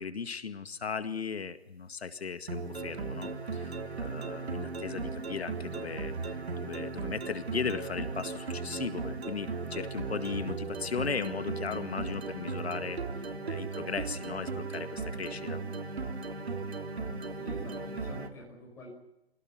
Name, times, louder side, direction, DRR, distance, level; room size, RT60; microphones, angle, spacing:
voice 1, 0.0-13.0 13.4-15.6, left 5 dB, 80° left, 9 dB, 2.1 m, -37 dB
sound 1, 2.5-18.3, right 4 dB, 85° right, 3.5 m, -37 dB
voice 2, 17.4-18.9, left 1 dB, 10° left, -1 dB, 5.6 m, -47 dB
26.0 x 17.5 x 9.5 m, 0.86 s
hypercardioid pair, 175°, 31 cm